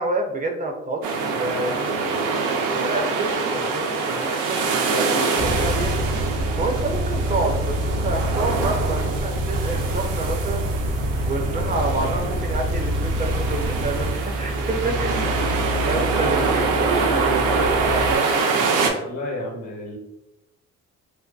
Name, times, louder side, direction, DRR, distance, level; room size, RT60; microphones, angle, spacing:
voice 1, 0.0-1.8 2.7-5.9 6.6-10.7 11.2-15.2 15.9-18.7, right 2 dB, 30° right, 3 dB, 0.4 m, -28 dB
sound 1, 1.0-18.9, right 4 dB, 85° right, 0.5 m, -25 dB
sound 2, 5.4-18.2, right 1 dB, 40° left, 0.4 m, -26 dB
voice 2, 11.6-12.3 14.8-15.7 19.0-20.0, left 1 dB, 70° left, 0 dB, 0.9 m, -33 dB
2.6 x 2.4 x 2.2 m, 0.91 s
cardioid pair, 90°, 30 cm